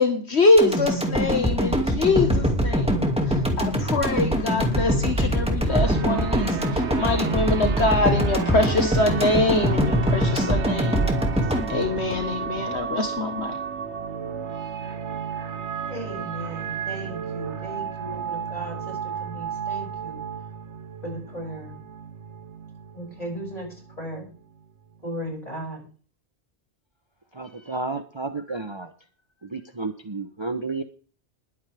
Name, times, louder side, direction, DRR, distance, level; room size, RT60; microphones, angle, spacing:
voice 1, 0.0-2.9 3.3-11.1 11.7-13.6, left 3 dB, 65° left, 4 dB, 1.8 m, -24 dB
sound 1, 0.6-12.8 13.2-13.3, equal, 5° right, 2.3 m, -23 dB
sound 2, 5.7-25.1, right 7 dB, 75° right, 1.3 m, -33 dB
voice 2, 15.8-20.2 21.0-21.8 22.9-24.3 25.0-25.8, equal, 30° left, 0 dB, 7.1 m, -37 dB
voice 3, 27.3-28.9 29.4-30.8, right 3 dB, 25° right, 7 dB, 0.9 m, -31 dB
21.5 x 8.7 x 3.5 m, 0.40 s
omnidirectional pair, 1.2 m